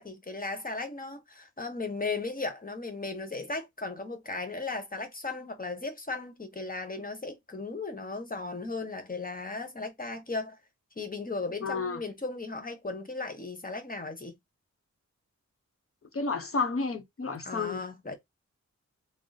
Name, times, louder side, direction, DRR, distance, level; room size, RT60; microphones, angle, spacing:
voice 1, 0.0-10.6 11.0-14.4 17.4-18.1, left 3 dB, 30° left, 1.1 m, -36 dB
voice 2, 11.6-12.0 16.1-17.8, left 4 dB, 50° left, 0.8 m, -31 dB
3.8 x 2.0 x 4.0 m
wide cardioid pair, 75°, 30 cm